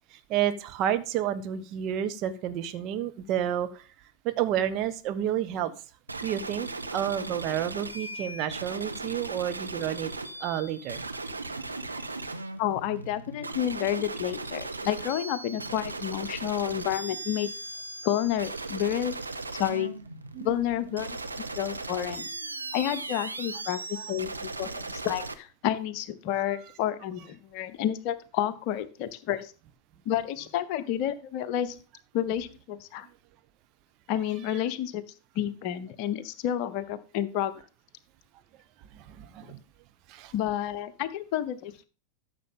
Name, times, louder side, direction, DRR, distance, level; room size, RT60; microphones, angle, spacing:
voice 1, 0.3-3.8 4.2-5.7 6.2-10.1 10.4-11.0 20.3-20.5 38.9-39.6 40.1-40.3, right 10 dB, 40° right, 9 dB, 1.0 m, -30 dB
sound 1, 6.1-25.3, right 3 dB, 80° right, 0.8 m, -37 dB
voice 2, 12.6-17.5 18.0-19.1 19.6-19.9 20.4-21.2 21.6-22.3 22.7-29.5 30.1-31.8 32.1-33.1 34.1-35.0 35.3-37.5 40.3-41.8, left 11 dB, 45° left, 13 dB, 0.8 m, -30 dB
13.5 x 6.8 x 3.7 m, 0.36 s
figure-of-eight pair, 90°, 0 cm